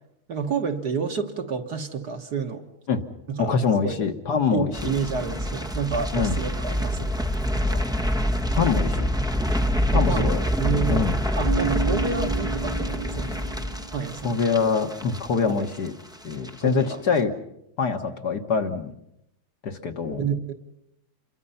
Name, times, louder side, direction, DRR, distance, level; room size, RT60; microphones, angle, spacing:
voice 1, 0.3-2.7 3.3-3.6 3.8-4.0 4.5-7.1 7.7-7.8 9.9-10.3 10.6-13.4 13.9-14.4 15.4-15.7 16.6-17.0 20.2-20.5, right 5 dB, 50° right, 5 dB, 1.8 m, -29 dB
voice 2, 3.4-4.9 6.1-6.4 8.6-9.1 9.9-10.4 10.9-11.2 14.2-15.9 16.2-17.3 17.8-18.9 19.6-20.2, left 5 dB, 55° left, 5 dB, 1.7 m, -24 dB
sound 1, 4.7-15.9 16.1-16.5 16.8-16.9, equal, 5° right, 0.7 m, -26 dB
Keyboard (musical), 11.4-14.1, right 7 dB, 75° right, 2.6 m, -31 dB
28.0 x 23.0 x 5.6 m, 0.80 s
omnidirectional pair, 2.4 m